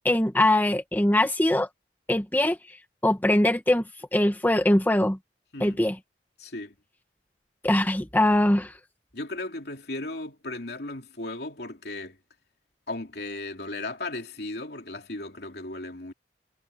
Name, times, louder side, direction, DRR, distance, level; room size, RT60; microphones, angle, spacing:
voice 1, 0.0-1.7 2.1-2.8 3.0-3.8 4.1-5.2 5.6-6.0 7.6-8.7, left 1 dB, 10° left, 1.0 m, -22 dB
voice 2, 6.4-6.7 9.1-12.2 12.9-16.1, left 2 dB, 65° left, 3.0 m, -36 dB
head